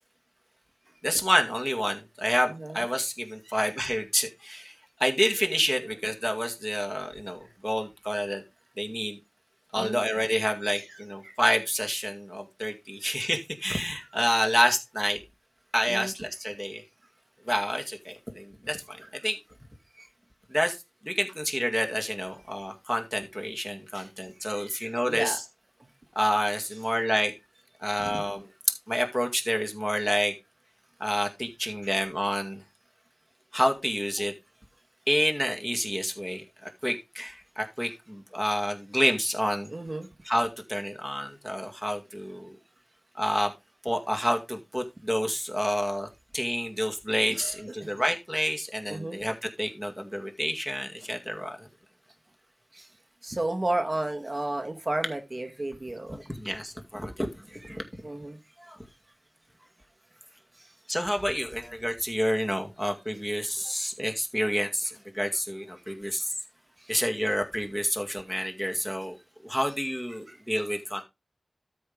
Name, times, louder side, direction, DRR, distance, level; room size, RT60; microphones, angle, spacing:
voice 1, 1.0-4.7 5.0-8.4 8.8-9.2 9.7-15.2 15.7-16.8 17.5-19.4 20.5-20.8 21.0-25.4 26.2-27.3 27.8-28.5 28.9-30.3 31.0-32.6 33.5-34.3 35.1-39.7 40.3-42.6 43.2-43.5 43.8-46.1 46.3-51.7 56.1-57.8 58.6-58.8 60.9-66.3 66.9-69.1 69.4-71.0, equal, 5° left, 3 dB, 2.1 m, -29 dB
voice 2, 2.5-2.8 3.4-3.6 9.8-10.0 10.6-10.8 11.2-11.3 13.1-13.2 15.9-16.1 19.9-20.1 23.9-24.1 24.5-25.4 25.8-25.9 28.0-28.2 39.7-40.1 47.3-47.9 48.9-49.2 52.7-52.9 53.2-56.3 57.6-58.4 60.5-60.7 65.9-66.0 66.8-67.0 70.3-70.4, right 2 dB, 35° right, 5 dB, 1.3 m, -34 dB
13.0 x 5.6 x 3.4 m, 0.24 s
wide cardioid pair, 75°, 0 cm